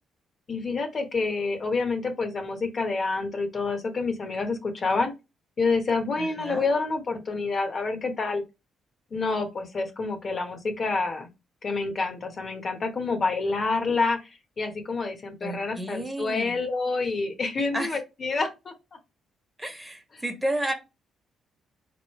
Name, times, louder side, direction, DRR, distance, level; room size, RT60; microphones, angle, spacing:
voice 1, 0.5-5.1 5.6-8.4 9.1-11.3 11.6-14.3 14.6-18.7, left 3 dB, 45° left, 5 dB, 1.0 m, -28 dB
voice 2, 6.2-6.7 15.4-16.6 17.7-18.0 19.6-20.7, right 1 dB, 10° right, 5 dB, 1.1 m, -31 dB
4.1 x 3.1 x 3.1 m, 0.25 s
cardioid pair, 90°, 0 cm